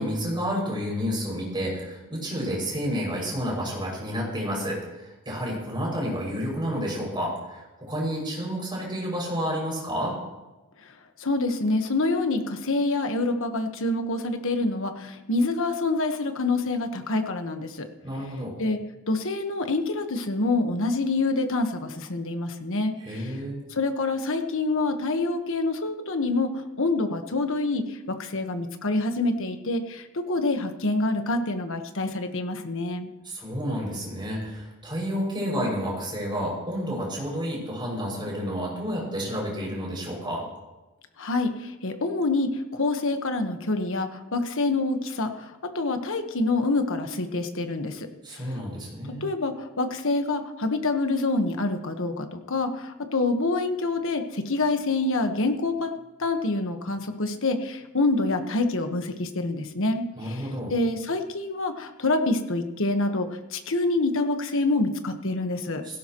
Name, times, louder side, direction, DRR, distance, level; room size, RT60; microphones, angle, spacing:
voice 1, 0.0-10.1 18.0-18.5 23.0-23.5 33.2-40.4 48.2-49.3 60.2-60.7 65.8-66.0, equal, 20° right, -3 dB, 6.4 m, -30 dB
voice 2, 11.2-17.9 18.6-18.8 19.1-23.3 23.7-26.5 26.8-33.1 41.2-48.1 49.2-60.4 60.7-65.8, left 2 dB, 60° left, 6 dB, 1.3 m, -26 dB
17.0 x 17.0 x 3.1 m, 1.1 s
head